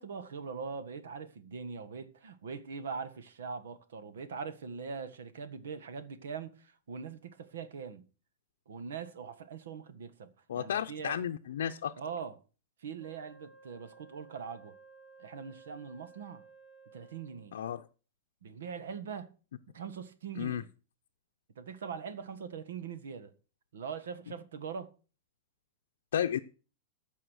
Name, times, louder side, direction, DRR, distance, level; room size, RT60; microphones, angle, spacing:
voice 1, 0.0-8.0 8.7-11.2 12.0-12.4 12.8-14.7 15.2-16.5 16.9-17.6 18.4-19.3 19.7-20.7 21.6-23.3 23.7-24.9, right 6 dB, 80° right, 1.6 m, -42 dB
voice 2, 10.5-11.9 17.5-17.8 20.4-20.6 26.1-26.4, left 9 dB, 75° left, 0.6 m, -32 dB
Wind instrument woodwind instrument, 13.0-17.6, right 4 dB, ahead, 2.8 m, -57 dB
14.5 x 5.6 x 6.4 m
supercardioid pair, 175°, 0 cm